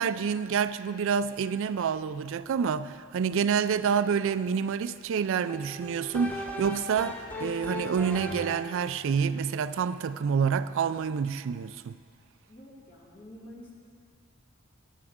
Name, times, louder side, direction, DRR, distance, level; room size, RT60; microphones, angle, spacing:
voice 1, 0.0-12.0, right 6 dB, 65° right, 0.4 m, -28 dB
sound 1, 5.5-8.8, left 1 dB, 10° left, 0.9 m, -38 dB
voice 2, 12.5-13.7, left 1 dB, 45° left, 2.7 m, -48 dB
17.0 x 11.0 x 3.7 m
head